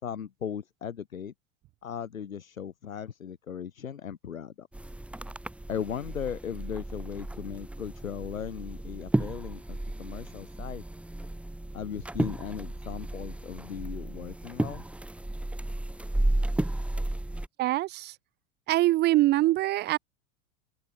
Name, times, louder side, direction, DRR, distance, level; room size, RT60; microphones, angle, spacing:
voice 1, 0.0-1.3 1.8-4.7 5.7-10.8 11.7-14.9, left 8 dB, 90° left, 3.2 m, -37 dB
sound 1, 4.7-17.5, right 1 dB, 5° right, 1.0 m, -33 dB
voice 2, 17.6-18.1 18.7-20.0, right 17 dB, 25° right, 0.4 m, -24 dB
open air
hypercardioid pair, 95°, 40 cm